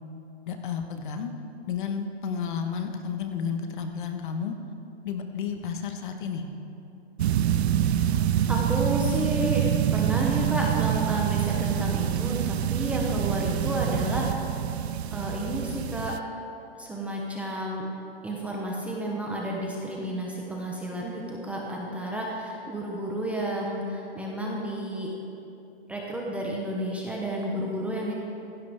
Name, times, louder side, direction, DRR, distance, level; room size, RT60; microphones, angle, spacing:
voice 1, 0.5-1.3 1.7-4.5 5.0-6.4, left 6 dB, 50° left, 5 dB, 1.3 m, -32 dB
sound 1, 7.2-16.2, right 10 dB, 75° right, 0.6 m, -26 dB
voice 2, 8.5-9.7 9.9-14.3 15.1-16.1 16.7-17.9 18.2-25.1 25.9-28.1, right 1 dB, 5° right, -2 dB, 0.7 m, -31 dB
16.5 x 15.5 x 3.5 m, 2.8 s
hypercardioid pair, 160°, 32 cm